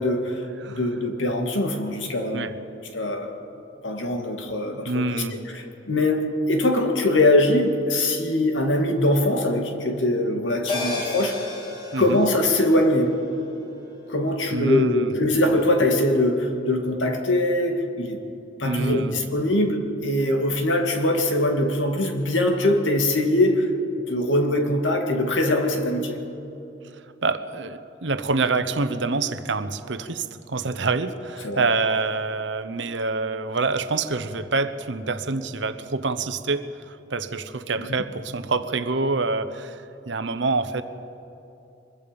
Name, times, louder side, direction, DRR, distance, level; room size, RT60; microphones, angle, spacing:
voice 1, 0.0-2.5 2.9-3.4 3.8-11.5 12.0-13.2 14.1-18.2 18.6-23.7 24.1-26.2 31.4-31.7 37.8-37.9, left 1 dB, 90° left, 4 dB, 2.3 m, -22 dB
voice 2, 4.8-5.4 11.9-12.2 14.5-15.3 18.6-19.2 27.2-40.8, right 3 dB, 75° right, 11 dB, 1.0 m, -26 dB
sound 1, 10.7-15.4 15.7-15.8, left 3 dB, 25° left, 3.8 m, -35 dB
24.0 x 22.0 x 5.3 m, 2.8 s
head